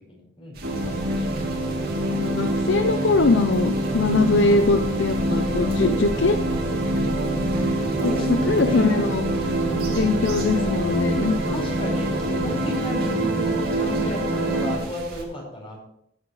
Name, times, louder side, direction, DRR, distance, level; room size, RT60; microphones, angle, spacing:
voice 1, 0.1-0.6 7.8-9.1 9.5-10.0 11.5-15.8, left 1 dB, 30° left, -1 dB, 5.0 m, -33 dB
sound 1, 0.5-15.2, right 1 dB, 55° right, 2.9 m, -39 dB
sound 2, 0.6-14.8, right 1 dB, 70° right, 3.0 m, -25 dB
voice 2, 2.1-6.4 6.7-6.8 8.0-9.3 9.9-11.6, left 3 dB, 65° left, 7 dB, 0.7 m, -22 dB
15.5 x 9.2 x 3.2 m, 0.70 s
head